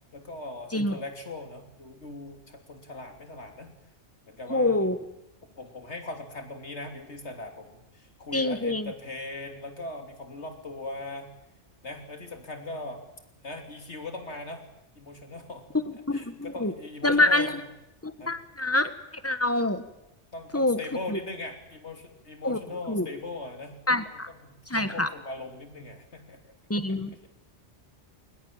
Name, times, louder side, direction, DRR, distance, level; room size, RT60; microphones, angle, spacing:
voice 1, 0.1-3.7 4.3-4.9 5.5-11.3 11.8-13.0 13.4-14.6 14.9-15.8 16.1-17.7 18.2-18.3 20.3-26.5 26.8-27.0, left 2 dB, 75° left, 5 dB, 3.5 m, -40 dB
voice 2, 4.5-5.0 8.3-8.9 16.1-16.3 16.6-16.7 17.0-17.5 18.0-18.9 19.2-19.8 20.5-20.8 21.1-21.2 22.4-22.6 22.9-23.1 23.9-24.3 24.7-25.1 26.7-27.1, left 2 dB, 15° left, 11 dB, 1.4 m, -25 dB
21.5 x 20.0 x 8.9 m, 0.87 s
omnidirectional pair, 1.2 m